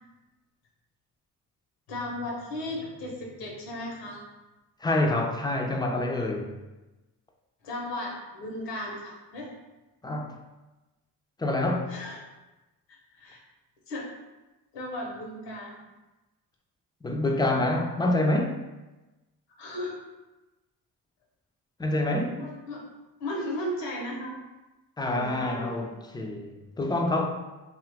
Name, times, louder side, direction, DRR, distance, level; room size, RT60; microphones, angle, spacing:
voice 1, 1.9-4.2 7.6-9.5 11.9-12.2 12.9-13.4 13.9-14.1 14.7-15.7 19.6-20.0 22.0-22.8 23.2-24.4 25.0-25.9, left 1 dB, 80° left, -1 dB, 0.9 m, -36 dB
voice 2, 4.8-6.6 10.0-10.4 11.4-11.9 17.0-18.6 21.8-22.4 25.0-27.3, left 1 dB, 10° left, 3 dB, 0.4 m, -27 dB
2.6 x 2.4 x 3.3 m, 1.1 s
supercardioid pair, 55°, 41 cm